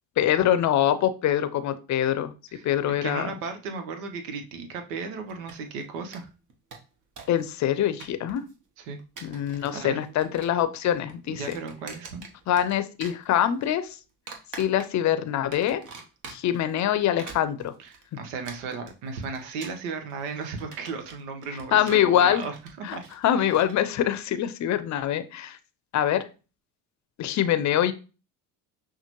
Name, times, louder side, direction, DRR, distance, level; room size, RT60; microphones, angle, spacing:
voice 1, 0.2-2.3 2.6-3.3 7.3-8.4 9.2-11.6 12.5-13.9 14.5-15.8 16.3-17.7 21.7-22.5 22.8-23.0 23.2-25.6 25.9-26.2 27.2-27.9, left 11 dB, 40° left, 12 dB, 0.6 m, -24 dB
voice 2, 3.0-6.3 8.8-9.0 9.7-10.0 11.3-12.2 17.8-23.0 23.3-23.5, right 4 dB, 80° right, 7 dB, 0.9 m, -35 dB
sound 1, 5.3-5.8 6.1-6.2 6.5-7.4 7.7-8.5 9.0-9.8 10.0-10.6 10.9-12.7 13.0-13.7 14.3-15.1 15.5-16.6 17.0-23.7, right 4 dB, 40° right, 1.1 m, -45 dB
5.7 x 2.2 x 3.0 m, 0.32 s
hypercardioid pair, 70°, 45 cm